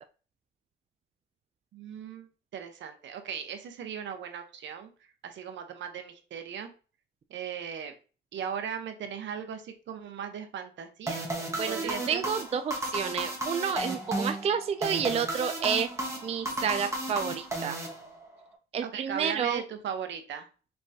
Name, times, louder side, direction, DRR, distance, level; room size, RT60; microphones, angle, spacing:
voice 1, 1.7-4.9 5.2-6.7 7.3-8.0 8.3-11.3 11.7-12.2 18.8-20.5, right 7 dB, 65° right, 7 dB, 0.9 m, -38 dB
sound 1, 11.1-18.4, right 1 dB, 15° right, 1.3 m, -34 dB
voice 2, 11.6-15.9 16.2-17.8 18.7-19.6, right 7 dB, 30° right, 9 dB, 0.3 m, -30 dB
4.5 x 3.2 x 2.7 m, 0.36 s
cardioid pair, 90°, 20 cm